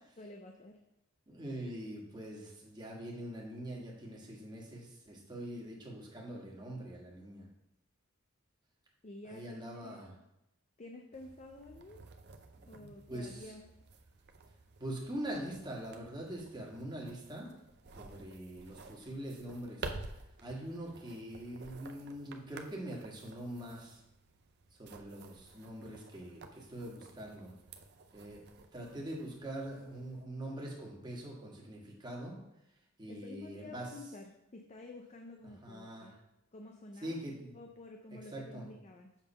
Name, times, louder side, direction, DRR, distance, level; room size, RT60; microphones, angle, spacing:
voice 1, 0.2-0.8 9.0-10.0 10.8-12.0 12.7-13.7 33.1-36.1 36.5-37.2 37.5-39.1, left 2 dB, 35° left, 3 dB, 0.5 m, -50 dB
voice 2, 1.3-7.5 9.2-10.1 12.5-13.5 14.8-17.5 17.9-19.9 20.4-24.0 24.8-27.5 28.1-28.4 28.7-32.4 33.0-33.9 35.4-36.1 37.0-37.6 38.3-38.7, right 1 dB, 20° right, -2 dB, 1.6 m, -43 dB
sound 1, 11.1-30.2, right 3 dB, 55° right, 0.6 m, -52 dB
7.2 x 3.8 x 5.4 m, 0.85 s
head